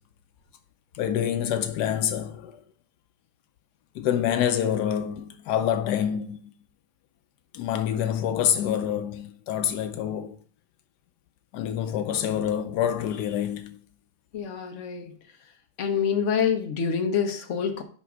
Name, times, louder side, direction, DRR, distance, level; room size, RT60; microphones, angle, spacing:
voice 1, 0.9-2.6 3.9-6.4 7.5-10.4 11.5-13.8, left 9 dB, 85° left, 1.2 m, -26 dB
voice 2, 14.3-15.2 15.8-17.8, left 7 dB, 50° left, 1.3 m, -26 dB
5.9 x 5.3 x 6.1 m
omnidirectional pair, 1.8 m